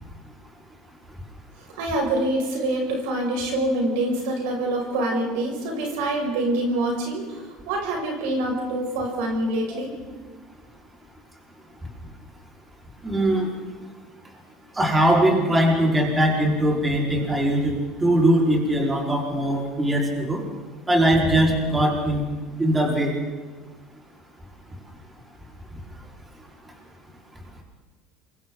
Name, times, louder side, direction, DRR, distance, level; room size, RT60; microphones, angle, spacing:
voice 1, 1.6-10.0, right 1 dB, 85° right, 0 dB, 6.4 m, -26 dB
voice 2, 13.0-13.5 14.8-17.7 18.0-20.4 20.9-22.2 22.6-23.1, right 1 dB, 15° right, -2 dB, 4.9 m, -21 dB
28.0 x 23.5 x 4.1 m, 1.3 s
supercardioid pair, 125°, 0 cm